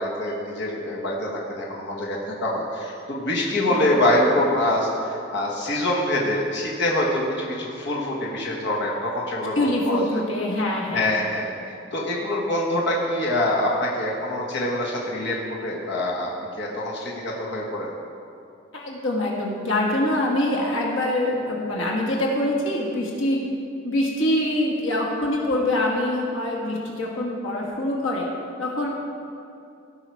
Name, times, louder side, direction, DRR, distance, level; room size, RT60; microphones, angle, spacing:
voice 1, 0.0-10.2 10.9-16.3 16.6-17.9, left 1 dB, 60° left, -3 dB, 1.5 m, -25 dB
voice 2, 9.5-11.1 18.7-23.4 23.8-28.3 28.6-28.9, left 1 dB, 80° left, -2 dB, 1.6 m, -24 dB
17.0 x 5.7 x 4.7 m, 2.6 s
head